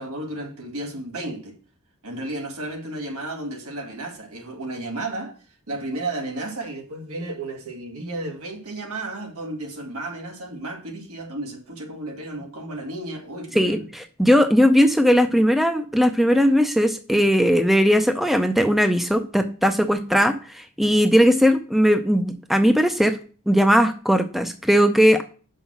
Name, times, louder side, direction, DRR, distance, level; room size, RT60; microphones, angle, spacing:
voice 1, 0.0-1.6 2.0-5.4 5.7-13.9, right 2 dB, 85° right, 1.8 m, -33 dB
voice 2, 14.2-23.2 23.5-25.2, equal, ahead, 0.4 m, -18 dB
6.0 x 5.6 x 5.9 m
head